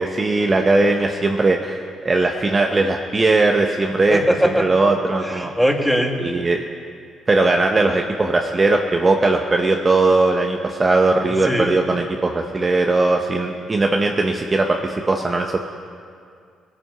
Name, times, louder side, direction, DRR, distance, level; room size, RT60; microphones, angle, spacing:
voice 1, 0.0-5.5 6.2-6.6 7.3-15.6, right 2 dB, 30° right, 3 dB, 0.9 m, -19 dB
voice 2, 4.1-4.6 5.2-6.2 11.2-11.8, equal, ahead, 2 dB, 1.8 m, -20 dB
19.0 x 9.5 x 5.6 m, 2.3 s
cardioid pair, 90°, 0 cm